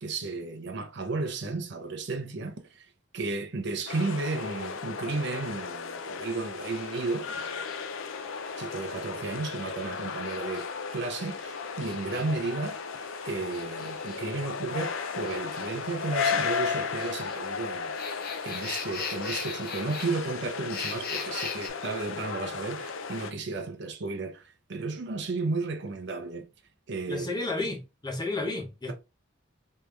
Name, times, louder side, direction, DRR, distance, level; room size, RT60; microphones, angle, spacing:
voice 1, 0.0-2.8 3.1-7.7 8.6-10.7 10.9-12.8 13.2-17.9 18.4-26.5 26.9-27.3, right 3 dB, 55° right, 0.7 m, -33 dB
sound 1, 3.9-23.3, left 5 dB, 75° left, 0.5 m, -35 dB
sound 2, 6.7-21.7, left 5 dB, 45° left, 0.9 m, -43 dB
voice 2, 27.1-28.9, left 2 dB, 20° left, 0.9 m, -32 dB
3.3 x 3.3 x 3.1 m
head